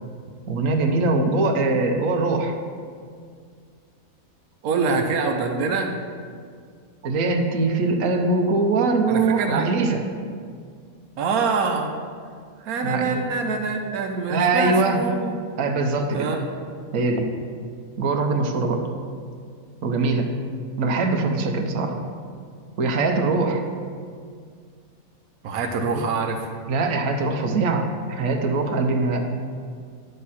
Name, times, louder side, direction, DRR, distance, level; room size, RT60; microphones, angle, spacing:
voice 1, 0.5-2.5 7.0-10.0 12.8-13.2 14.3-15.0 15.6-16.3 16.9-17.3 18.0-18.8 19.8-20.3 20.8-21.9 22.8-23.6 25.9-26.0 26.7-29.2, right 3 dB, 70° right, 3 dB, 1.2 m, -22 dB
voice 2, 4.6-5.9 9.1-9.6 11.2-11.9 12.6-15.4 16.1-16.5 25.4-26.5, right 4 dB, 90° right, 4 dB, 1.2 m, -25 dB
10.0 x 6.8 x 4.2 m, 2.1 s
omnidirectional pair, 1.5 m